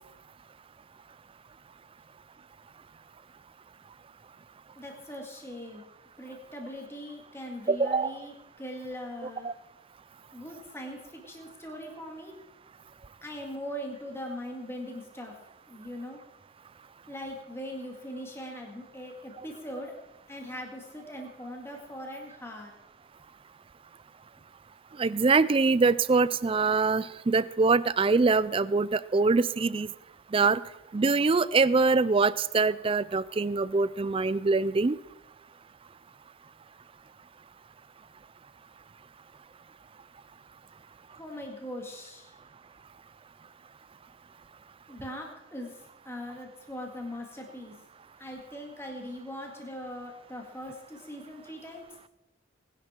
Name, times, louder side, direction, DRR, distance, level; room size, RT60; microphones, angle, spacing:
voice 1, 4.8-5.8 6.2-9.5 10.3-12.4 13.2-15.3 15.7-16.2 17.1-20.0 20.3-22.7 41.2-42.3 44.9-45.7 46.0-47.7 48.2-51.8, equal, 10° left, 1 dB, 2.1 m, -40 dB
voice 2, 7.7-8.1 9.4-9.5 25.0-29.9 30.3-30.6 30.9-35.0, right 4 dB, 25° right, 18 dB, 0.4 m, -24 dB
19.5 x 11.0 x 4.5 m, 0.94 s
head